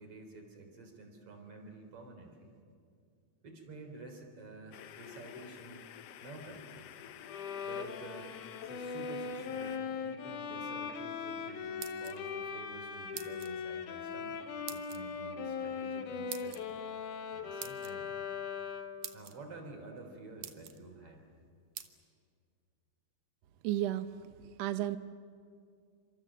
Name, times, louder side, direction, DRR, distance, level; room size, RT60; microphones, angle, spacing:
voice 1, 0.0-2.5 3.4-5.8 6.2-6.8 7.6-8.3 8.6-14.4 14.7-16.8 17.3-18.1 19.1-21.2, right 2 dB, 40° right, 4 dB, 4.4 m, -50 dB
sound 1, 4.7-9.8, left 10 dB, 90° left, 1.3 m, -50 dB
Bowed string instrument, 7.3-19.1, left 6 dB, 70° left, 2.6 m, -40 dB
sound 2, 11.6-12.4 13.1-13.6 14.7-15.0 16.3-16.6 17.6-17.9 18.6-18.7 19.0-19.3 20.0-20.1 20.4-20.8 21.8-21.9, right 11 dB, 70° right, 2.5 m, -44 dB
voice 2, 23.6-24.1 24.6-25.0, right 13 dB, 85° right, 11 dB, 1.4 m, -32 dB
29.5 x 26.5 x 7.5 m, 2.3 s
omnidirectional pair, 4.0 m